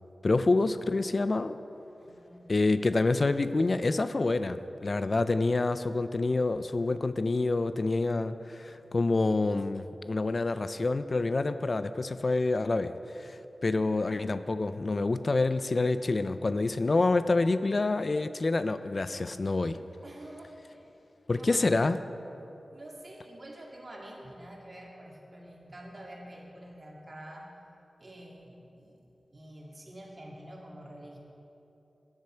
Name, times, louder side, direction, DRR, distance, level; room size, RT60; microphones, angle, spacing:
voice 1, 0.2-1.6 2.5-19.8 21.3-22.0, left 3 dB, 55° left, 12 dB, 0.4 m, -27 dB
voice 2, 2.0-2.6 20.0-20.9 21.3-21.7 22.1-27.5 28.0-29.0 29.3-31.2, right 1 dB, 50° right, -2 dB, 2.0 m, -48 dB
12.0 x 8.8 x 4.5 m, 2.9 s
cardioid pair, 45°, 0 cm